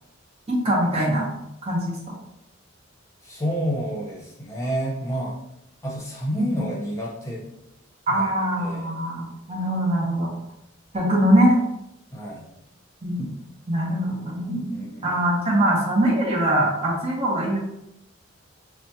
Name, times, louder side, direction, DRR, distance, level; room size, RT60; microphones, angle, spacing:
voice 1, 0.5-1.3 1.6-2.1 8.1-10.3 10.9-11.6 13.0-13.3 13.7-17.6, right 1 dB, 30° right, -4 dB, 0.7 m, -22 dB
voice 2, 3.2-5.4 5.8-7.5 8.1-8.3 8.6-8.8 12.1-12.5 14.7-15.2, equal, 15° left, -4 dB, 0.9 m, -29 dB
5.8 x 2.2 x 2.8 m, 0.82 s
head